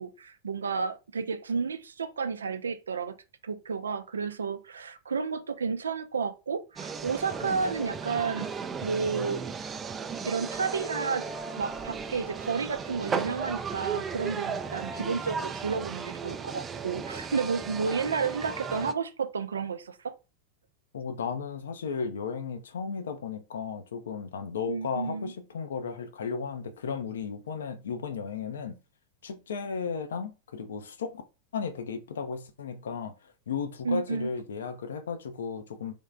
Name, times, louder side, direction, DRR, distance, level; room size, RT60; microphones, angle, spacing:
voice 1, 0.0-3.1 3.4-8.5 8.8-9.5 10.2-11.3 11.6-20.1 24.7-25.3 33.8-34.3, right 5 dB, 70° right, 0.5 m, -31 dB
sound 1, 6.8-18.9, right 5 dB, 20° right, 0.4 m, -35 dB
voice 2, 20.9-28.8 29.2-31.2 31.5-35.9, left 5 dB, 65° left, 0.6 m, -35 dB
3.6 x 3.1 x 3.7 m
figure-of-eight pair, 90°, 0 cm